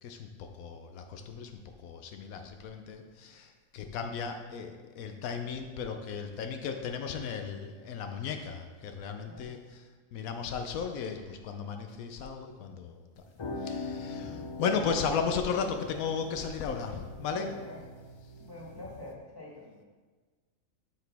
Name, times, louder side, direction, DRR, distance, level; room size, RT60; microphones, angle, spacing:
voice 1, 0.0-13.2 13.6-17.5, left 6 dB, 85° left, 5 dB, 1.1 m, -35 dB
voice 2, 9.2-9.6 17.3-17.8 18.4-19.7, left 1 dB, 15° left, -5 dB, 1.8 m, -45 dB
sound 1, 13.1-19.1, left 3 dB, 45° left, 0.3 m, -42 dB
11.5 x 4.8 x 3.4 m, 1.4 s
omnidirectional pair, 1.4 m